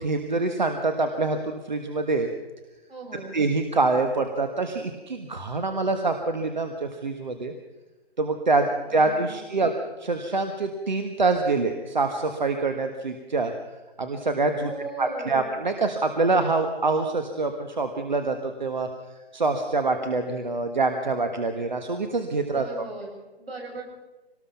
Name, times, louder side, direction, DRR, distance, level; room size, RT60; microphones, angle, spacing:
voice 1, 0.0-2.3 3.1-7.5 8.2-9.7 10.0-13.5 14.0-14.7 15.0-18.9 19.3-22.7, right 3 dB, 45° right, 6 dB, 1.5 m, -25 dB
voice 2, 2.9-3.3 8.8-9.7 14.6-15.5 22.5-23.8, right 3 dB, 65° right, 2 dB, 7.7 m, -39 dB
24.5 x 19.0 x 5.8 m, 1.1 s
hypercardioid pair, 175°, 32 cm